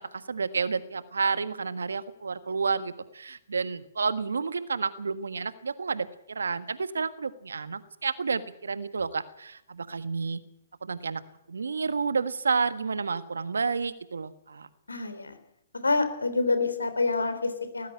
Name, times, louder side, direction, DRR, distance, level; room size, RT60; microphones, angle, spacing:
voice 1, 0.1-10.4 10.8-11.2 11.5-14.7, right 5 dB, 80° right, 13 dB, 1.5 m, -30 dB
voice 2, 14.9-15.4 15.8-17.9, left 3 dB, 85° left, 10 dB, 3.3 m, -27 dB
19.0 x 14.0 x 9.7 m, 0.84 s
figure-of-eight pair, 125°, 0 cm